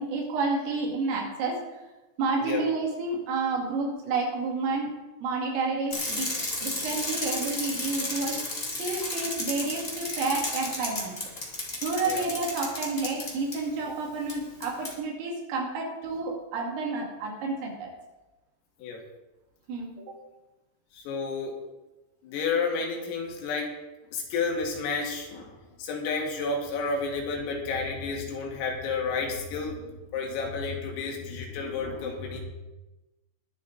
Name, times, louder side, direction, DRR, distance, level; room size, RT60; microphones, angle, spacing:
voice 1, 0.0-1.6 2.2-4.9 5.2-6.3 6.6-8.4 8.8-11.2 11.8-17.9 19.7-20.0, right 3 dB, 80° right, 0 dB, 5.0 m, -30 dB
Bicycle, 5.9-13.6 14.3-14.4 14.6-14.9, left 2 dB, 35° left, 0.8 m, -33 dB
voice 2, 20.9-21.6 22.2-23.7 24.1-32.4, left 4 dB, 85° left, 0 dB, 4.8 m, -31 dB
21.5 x 7.7 x 4.1 m, 1.1 s
omnidirectional pair, 5.8 m